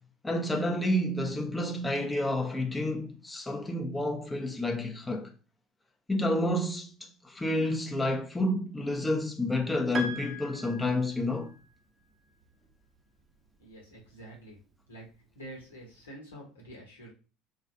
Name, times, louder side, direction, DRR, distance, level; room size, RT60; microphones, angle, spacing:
voice 1, 0.2-5.3 6.1-11.5, left 1 dB, 10° left, 0.6 m, -30 dB
Piano, 9.9-11.6, right 2 dB, 35° right, 0.6 m, -39 dB
voice 2, 13.6-14.6 14.9-15.1 15.3-17.1, right 1 dB, 75° left, 1.0 m, -47 dB
3.2 x 2.3 x 2.6 m
figure-of-eight pair, 65°, 0 cm